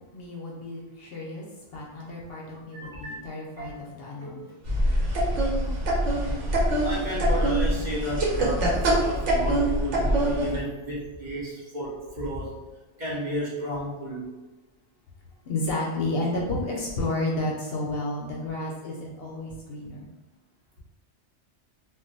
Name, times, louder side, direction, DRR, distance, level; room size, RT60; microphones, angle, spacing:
voice 1, 0.1-1.4 1.7-4.5 15.5-20.1, left 2 dB, 65° left, -3 dB, 0.7 m, -31 dB
voice 2, 2.7-3.1 3.6-3.9 4.2-4.5 6.1-6.4 6.8-12.6 13.0-14.3, equal, 45° right, -7 dB, 0.8 m, -33 dB
sound 1, 4.7-10.6, right 1 dB, 85° right, 1.0 m, -24 dB
2.2 x 2.1 x 3.8 m, 1.2 s
omnidirectional pair, 1.2 m